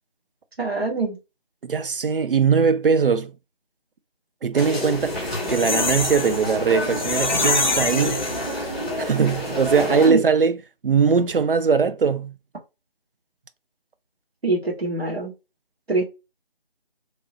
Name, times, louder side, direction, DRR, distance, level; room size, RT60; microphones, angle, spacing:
voice 1, 0.6-1.2 10.0-10.2 14.4-15.3 15.9-16.0, right 3 dB, 85° right, 1.4 m, -24 dB
voice 2, 1.6-3.3 4.4-8.3 9.0-10.6 10.8-12.3, right 5 dB, 65° right, 0.4 m, -20 dB
sound 1, 4.5-10.1, left 1 dB, ahead, 0.5 m, -28 dB
sound 2, 5.0-8.9 9.3-9.4 9.6-9.8, left 3 dB, 50° left, 0.5 m, -26 dB
2.9 x 2.0 x 2.6 m
figure-of-eight pair, 160°, 30 cm